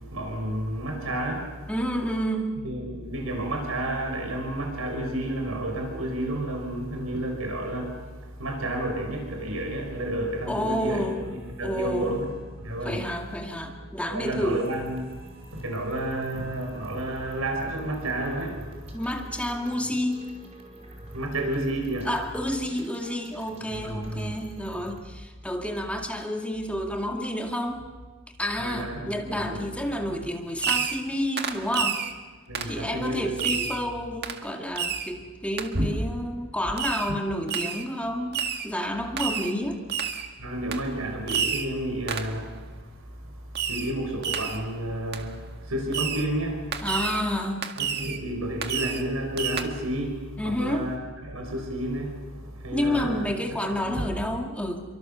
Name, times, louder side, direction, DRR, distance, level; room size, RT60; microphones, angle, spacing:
voice 1, 0.1-1.5 2.6-12.3 12.6-13.0 14.1-15.0 15.5-19.0 21.1-22.1 23.7-24.3 28.6-29.7 30.1-30.2 30.7-30.8 32.5-33.7 35.7-35.9 40.4-42.8 43.6-46.7 47.8-50.2 50.4-53.3 53.8-54.0, right 1 dB, 90° right, 3 dB, 5.9 m, -31 dB
voice 2, 1.7-2.7 10.5-11.3 11.6-12.2 12.8-14.7 18.9-20.3 22.1-27.9 28.4-32.0 32.6-39.8 46.8-47.7 50.4-50.9 52.7-54.8, equal, 5° left, 2 dB, 2.1 m, -30 dB
sound 1, 11.0-25.1, right 1 dB, 30° right, 5.2 m, -49 dB
Fireworks, 30.6-31.1 31.4-32.1 32.5-32.8 33.4-33.8 34.2-34.4 34.8-35.1 35.6-35.7 36.8-37.1 37.5-37.9 38.3-38.7 39.2-39.5 39.9-40.3 40.7-40.9 41.3-41.7 42.1-42.4 43.5-43.9 44.2-44.6 45.1-45.2 45.9-46.3 46.7-47.2 47.6-48.2 48.6-49.1 49.4-49.6, right 7 dB, 50° right, 1.8 m, -29 dB
29.5 x 24.0 x 7.0 m, 1.4 s
head